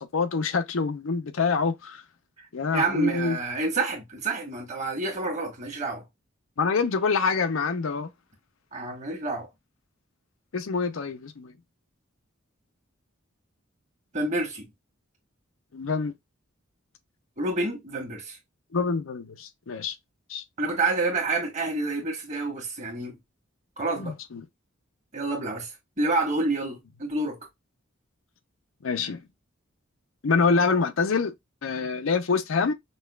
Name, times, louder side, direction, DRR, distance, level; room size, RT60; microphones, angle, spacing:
voice 1, 0.0-2.0 2.5-3.4 6.6-8.1 10.5-11.5 15.7-16.1 18.7-20.0 20.3-20.4 24.0-24.4 28.8-29.2 30.2-31.3 31.6-32.7, left 4 dB, 75° left, 0.5 m, -26 dB
voice 2, 2.7-6.0 8.7-9.5 14.1-14.7 17.4-18.4 20.6-23.1 23.8-24.1 25.1-25.7 26.0-27.4, right 2 dB, 35° right, 1.4 m, -28 dB
5.4 x 2.3 x 2.2 m
head